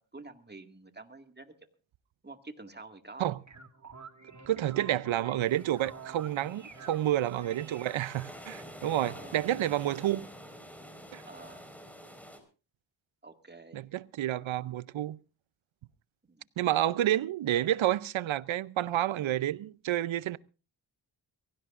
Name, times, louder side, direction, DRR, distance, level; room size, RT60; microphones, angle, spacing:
voice 1, 0.1-1.5 2.2-3.3 4.6-4.8 6.7-7.0 8.8-9.5 11.3-11.7 13.2-13.8 16.3-16.5 19.2-19.4, right 3 dB, 20° right, 2.0 m, -49 dB
sound 1, 3.4-8.5, right 5 dB, 40° right, 2.0 m, -49 dB
voice 2, 4.5-10.3 11.1-11.2 13.7-15.2 16.6-20.4, right 13 dB, 85° right, 0.7 m, -29 dB
sound 2, 5.4-12.4, equal, 5° left, 4.6 m, -48 dB
23.0 x 16.5 x 2.5 m
cardioid pair, 55°, 46 cm